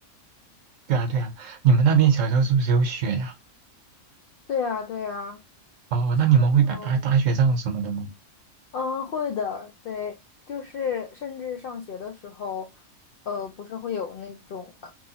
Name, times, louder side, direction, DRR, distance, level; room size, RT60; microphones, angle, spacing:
voice 1, 0.9-3.3 5.9-8.1, right 6 dB, 70° right, 1.0 m, -21 dB
voice 2, 4.5-5.4 6.4-6.9 8.7-10.2 10.5-12.7 13.3-14.9, left 6 dB, 70° left, 0.5 m, -32 dB
3.0 x 2.7 x 2.7 m
omnidirectional pair, 1.5 m